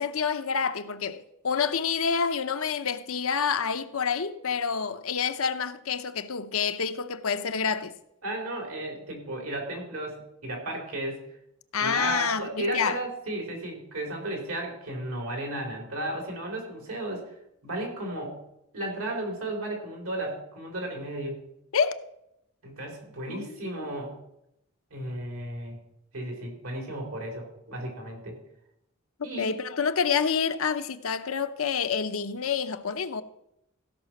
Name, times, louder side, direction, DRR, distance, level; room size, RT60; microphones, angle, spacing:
voice 1, 0.0-7.9 11.7-13.0 21.7-22.0 23.3-23.8 29.4-33.2, left 6 dB, 70° left, 0.7 m, -28 dB
voice 2, 8.2-11.3 11.8-17.2 17.6-18.4 18.7-21.4 22.6-24.2 24.9-25.8 26.1-28.4 29.2-29.6, right 1 dB, 80° right, 3.8 m, -34 dB
15.5 x 5.9 x 6.0 m
head